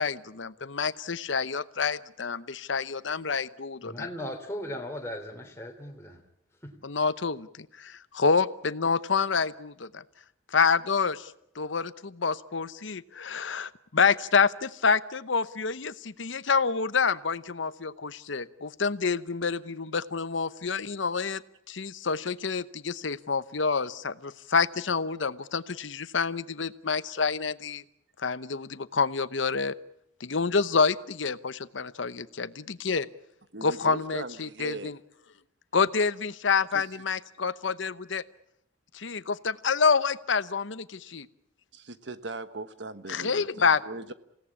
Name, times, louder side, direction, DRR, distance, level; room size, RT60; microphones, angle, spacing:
voice 1, 0.0-4.1 6.8-10.0 10.5-21.4 21.7-27.8 28.2-29.7 30.2-33.1 33.6-35.0 35.7-38.2 38.9-41.3 43.1-43.8, left 5 dB, 80° left, 15 dB, 0.9 m, -28 dB
voice 2, 3.8-6.2 6.6-6.7, left 1 dB, 15° left, 2 dB, 3.1 m, -37 dB
voice 3, 33.5-34.9 36.7-36.9 41.7-44.1, right 2 dB, 70° right, 12 dB, 1.3 m, -39 dB
28.0 x 17.5 x 8.6 m, 0.77 s
head